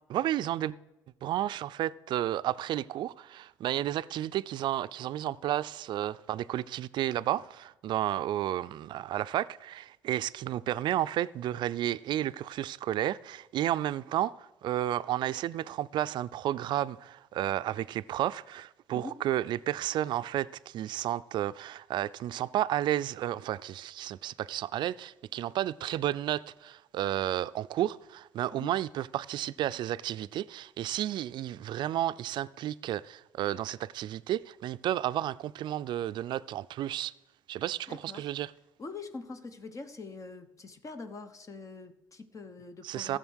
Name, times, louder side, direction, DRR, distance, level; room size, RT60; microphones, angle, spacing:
voice 1, 0.1-0.7 1.2-37.1 37.5-38.5 42.8-43.2, right 12 dB, 65° right, 0.4 m, -32 dB
voice 2, 37.9-38.3 38.8-43.2, left 3 dB, 40° left, 1.0 m, -44 dB
13.5 x 6.7 x 6.3 m
supercardioid pair, 65°, 9 cm